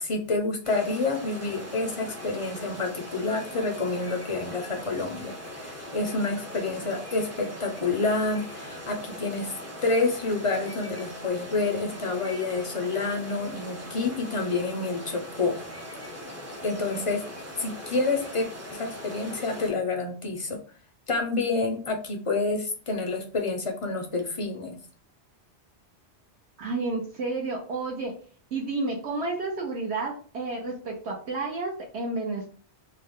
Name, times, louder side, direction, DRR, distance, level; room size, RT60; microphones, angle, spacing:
voice 1, 0.0-9.5 9.8-15.6 16.6-17.2 17.6-20.6 21.1-24.8, left 3 dB, 45° left, 2 dB, 0.4 m, -28 dB
sound 1, 0.6-19.7, equal, 25° right, 0.3 m, -40 dB
voice 2, 26.6-28.1 28.5-32.5, right 3 dB, 70° right, -1 dB, 1.0 m, -31 dB
2.8 x 2.1 x 3.5 m, 0.42 s
omnidirectional pair, 1.2 m